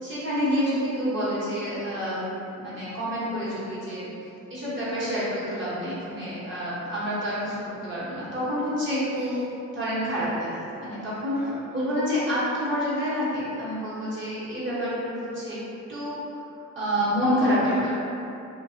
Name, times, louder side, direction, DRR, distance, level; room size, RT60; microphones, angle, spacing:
voice 1, 0.0-2.3 2.6-4.1 4.5-9.3 9.7-11.4 11.7-15.6 15.9-16.2 16.7-17.7, equal, 40° right, -10 dB, 1.2 m, -28 dB
voice 2, 9.1-9.4 11.4-11.9 17.2-18.0, equal, 5° right, -5 dB, 0.5 m, -41 dB
2.4 x 2.4 x 2.7 m, 2.8 s
cardioid pair, 90°, 30 cm